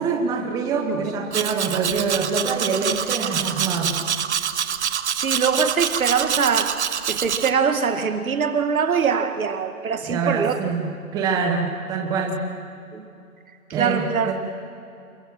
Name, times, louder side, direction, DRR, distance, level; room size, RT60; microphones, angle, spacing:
voice 1, 0.0-4.0 10.1-12.4 13.7-14.3, right 5 dB, 10° right, 3 dB, 1.2 m, -25 dB
Domestic sounds home sounds, 1.3-7.5, right 8 dB, 50° right, 1.0 m, -26 dB
voice 2, 5.1-6.8 7.1-10.6 12.9-13.1 13.7-14.3, right 6 dB, 65° right, 8 dB, 2.1 m, -23 dB
28.0 x 23.0 x 6.2 m, 2.5 s
hypercardioid pair, 155°, 45 cm